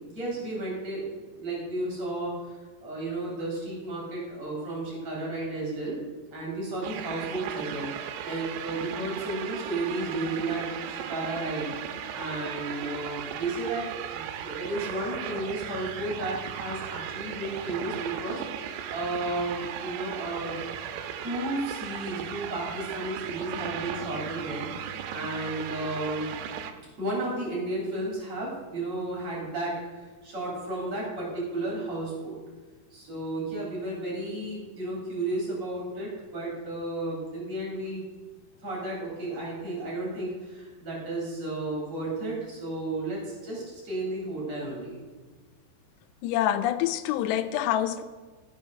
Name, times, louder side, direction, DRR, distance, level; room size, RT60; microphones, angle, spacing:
voice 1, 0.1-1.0 1.4-6.0 6.3-11.7 12.1-20.6 21.2-26.3 27.0-32.4 32.9-38.1 38.6-45.0, right 2 dB, 40° right, -4 dB, 4.1 m, -33 dB
sound 1, 6.8-26.7, right 9 dB, 85° right, 2.9 m, -37 dB
voice 2, 46.2-48.0, left 11 dB, 85° left, 10 dB, 2.7 m, -26 dB
13.5 x 6.5 x 6.3 m, 1.3 s
omnidirectional pair, 4.9 m